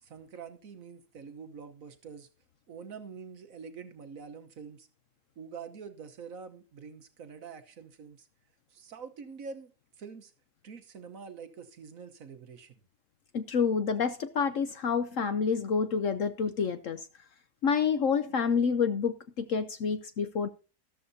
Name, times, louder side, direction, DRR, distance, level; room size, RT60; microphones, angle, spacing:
voice 1, 0.0-2.3 2.7-4.9 5.4-8.3 8.7-9.7 10.0-10.3 10.6-12.7, right 6 dB, 55° right, 1.4 m, -45 dB
voice 2, 13.3-17.0 17.6-20.5, left 6 dB, 60° left, 0.9 m, -28 dB
13.0 x 13.0 x 2.7 m
omnidirectional pair, 1.8 m